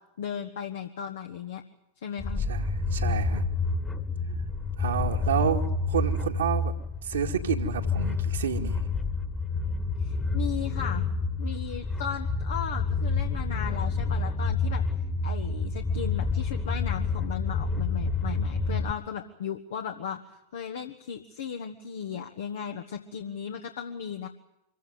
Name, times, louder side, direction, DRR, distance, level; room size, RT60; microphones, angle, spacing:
voice 1, 0.2-1.6 2.0-2.4 10.0-11.0 11.4-14.8 15.2-24.3, left 8 dB, 60° left, 5 dB, 1.5 m, -36 dB
sound 1, 2.2-18.9, left 3 dB, 15° left, 1.9 m, -29 dB
voice 2, 2.5-3.4 4.8-6.7 7.0-8.8, right 7 dB, 65° right, 2 dB, 2.2 m, -30 dB
25.0 x 16.0 x 9.8 m, 0.87 s
figure-of-eight pair, 90°, 0 cm